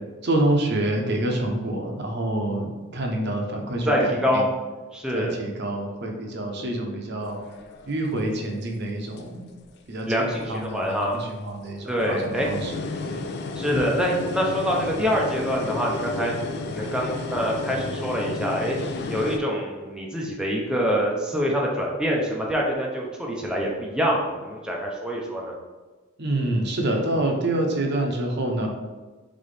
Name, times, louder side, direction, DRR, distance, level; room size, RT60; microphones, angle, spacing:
voice 1, 0.2-4.4 5.1-7.4 7.9-9.5 9.9-13.3 26.2-28.7, right 1 dB, 55° right, 1 dB, 0.7 m, -27 dB
voice 2, 3.9-4.5 4.9-5.4 10.1-11.1 11.9-12.5 13.6-16.3 16.7-18.8 19.1-25.5, equal, 5° right, -3 dB, 0.5 m, -25 dB
sound 1, 7.2-8.6 9.2-9.7 10.3-10.9 11.5-19.4, left 3 dB, 55° left, 0.4 m, -33 dB
4.1 x 3.7 x 3.3 m, 1.3 s
head